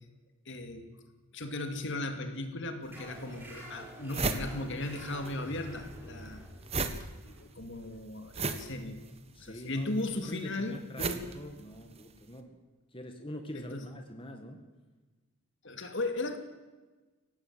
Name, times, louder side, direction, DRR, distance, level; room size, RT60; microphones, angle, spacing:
voice 1, 0.5-0.9 1.3-6.4 7.0-9.0 9.4-11.3 13.5-13.9 15.6-16.4, left 2 dB, 55° left, 7 dB, 2.4 m, -37 dB
sound 1, 2.9-10.0, right 1 dB, 10° right, 6.1 m, -49 dB
sound 2, 2.9-3.0 3.5-3.6 3.8-5.4 5.6-12.2, right 3 dB, 25° right, 1.3 m, -36 dB
voice 2, 9.3-9.9 10.2-12.6 12.9-14.7, left 1 dB, 25° left, 4 dB, 1.9 m, -45 dB
24.0 x 18.5 x 7.6 m, 1.2 s
head